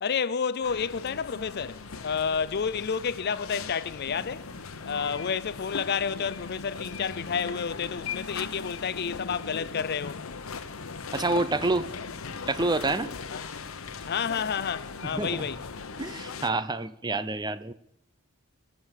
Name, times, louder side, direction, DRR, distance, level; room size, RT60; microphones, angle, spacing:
voice 1, 0.0-4.5 4.9-10.2 13.3-13.5 14.1-15.6, left 6 dB, 50° left, 0.5 m, -30 dB
sound 1, 0.6-16.5, left 5 dB, 80° left, 0.9 m, -39 dB
sound 2, 0.6-15.9, equal, 70° right, 4.7 m, -54 dB
voice 2, 11.1-11.9 12.5-13.1 15.1-15.4 16.0-17.7, right 2 dB, 20° right, 0.6 m, -27 dB
22.5 x 7.5 x 6.6 m
head